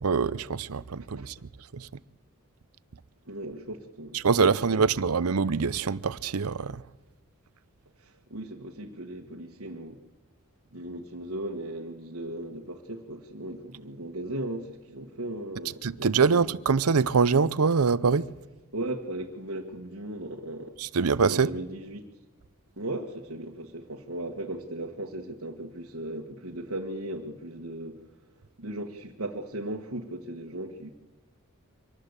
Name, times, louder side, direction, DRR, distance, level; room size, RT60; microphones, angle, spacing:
voice 1, 0.0-1.3 1.7-1.9 4.2-6.8 15.8-18.3 20.8-21.5, right 5 dB, 85° right, 0.7 m, -24 dB
voice 2, 3.2-4.3 8.0-10.0 10.7-16.4 18.7-20.8 21.3-22.0 22.8-28.0 28.6-30.9, right 1 dB, 70° right, 1.6 m, -37 dB
25.0 x 19.0 x 8.2 m
head